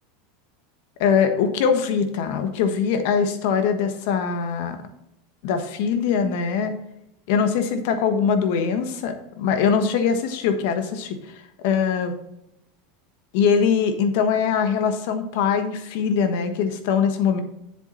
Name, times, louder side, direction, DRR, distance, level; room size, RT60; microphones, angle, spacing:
voice 1, 1.0-4.8 5.4-6.7 7.3-12.2 13.3-17.4, left 6 dB, 60° left, 8 dB, 1.3 m, -22 dB
7.8 x 7.4 x 4.3 m, 0.84 s
supercardioid pair, 160°, 0 cm